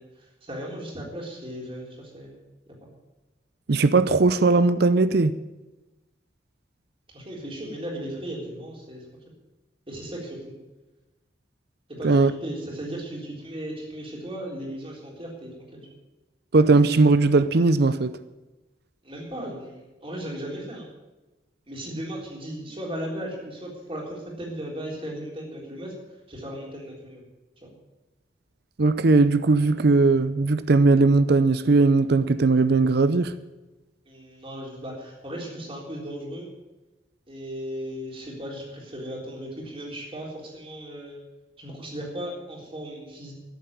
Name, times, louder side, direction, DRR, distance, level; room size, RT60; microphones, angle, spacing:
voice 1, 0.0-2.4 2.7-2.9 7.1-9.0 9.9-10.5 11.9-15.9 19.0-20.9 21.7-25.9 26.3-27.2 27.6-27.7 34.1-36.5 37.3-41.2 41.6-43.3, equal, 30° right, 3.8 m, -36 dB
voice 2, 3.7-5.4 12.0-12.3 16.5-18.1 28.8-33.3, right 3 dB, 60° right, 0.6 m, -19 dB
13.0 x 7.7 x 9.5 m
head